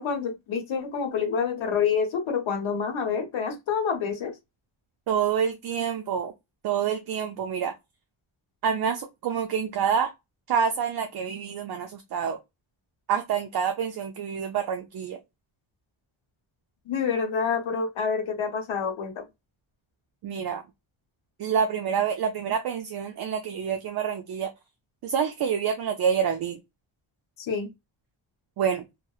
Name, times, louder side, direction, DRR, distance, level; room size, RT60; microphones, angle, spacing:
voice 1, 0.0-4.3 16.8-19.3 27.4-27.7, left 6 dB, 70° left, 0.9 m, -27 dB
voice 2, 5.1-6.3 6.6-7.7 8.6-10.1 10.5-12.4 13.1-15.2 20.2-20.6 21.4-24.5 25.0-26.6 28.6-28.9, right 7 dB, 55° right, 0.5 m, -27 dB
2.7 x 2.1 x 2.3 m
cardioid pair, 105°, 49 cm